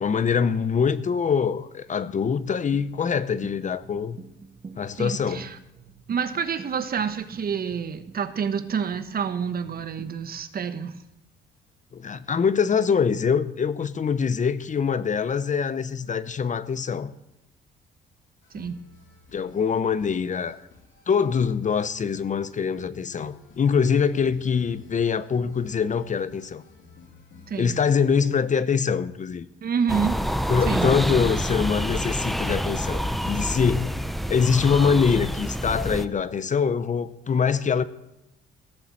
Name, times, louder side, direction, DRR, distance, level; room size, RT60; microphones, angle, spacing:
voice 1, 0.0-4.2 4.8-5.5 11.9-17.1 19.3-20.6 21.1-26.6 27.6-29.5 30.5-34.0 34.3-37.8, left 6 dB, 40° left, 0.8 m, -24 dB
sound 1, 2.7-10.4, right 4 dB, 35° right, 1.5 m, -47 dB
voice 2, 5.0-5.6 6.1-11.0 18.5-18.8 27.5-27.7 29.6-30.2 30.7-30.9, right 6 dB, 50° right, 1.2 m, -28 dB
sound 2, 18.4-28.2, left 4 dB, 75° left, 3.7 m, -52 dB
sound 3, 29.9-36.1, equal, ahead, 0.8 m, -27 dB
16.0 x 6.9 x 7.7 m
cardioid pair, 90°, 20 cm